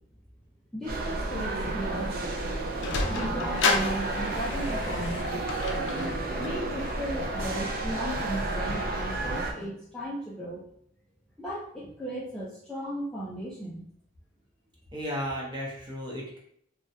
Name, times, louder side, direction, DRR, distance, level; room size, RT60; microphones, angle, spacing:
voice 1, 0.7-2.1 3.1-5.7 6.3-10.6 11.4-13.8, right 1 dB, 5° left, -8 dB, 0.4 m, -36 dB
sound 1, 0.8-9.6, equal, 70° right, 0.8 m, -46 dB
sound 2, 0.9-9.5, right 2 dB, 50° right, 0.5 m, -31 dB
Sliding door, 2.3-8.9, left 3 dB, 65° left, 0.4 m, -33 dB
voice 2, 14.9-16.4, equal, 25° right, -4 dB, 0.9 m, -34 dB
3.1 x 2.3 x 2.7 m, 0.69 s
head